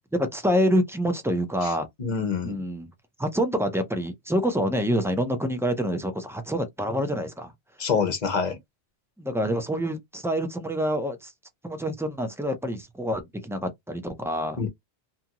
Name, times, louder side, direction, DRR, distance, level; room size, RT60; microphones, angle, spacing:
voice 1, 0.0-1.9 2.4-2.9 3.2-7.5 9.2-11.3 11.6-14.6, equal, 5° right, 0.3 m, -27 dB
voice 2, 2.0-2.6 7.8-8.6 14.6-14.7, left 5 dB, 45° left, 0.8 m, -26 dB
2.8 x 2.4 x 2.8 m
omnidirectional pair, 1.0 m